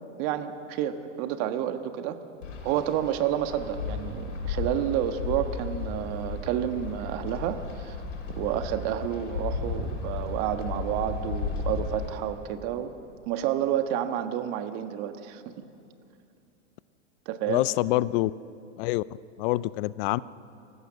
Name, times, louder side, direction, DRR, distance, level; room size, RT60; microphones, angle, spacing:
voice 1, 0.2-2.2 2.6-8.0 8.4-12.9 13.3-15.4 17.2-17.7, right 11 dB, 50° right, 8 dB, 1.5 m, -30 dB
Wind, 2.4-12.2, left 4 dB, 85° left, 5.5 m, -34 dB
voice 2, 17.5-18.3 18.8-19.0 19.4-20.2, left 18 dB, 50° left, 19 dB, 0.6 m, -25 dB
26.5 x 15.0 x 6.5 m, 2.7 s
hypercardioid pair, 115°, 36 cm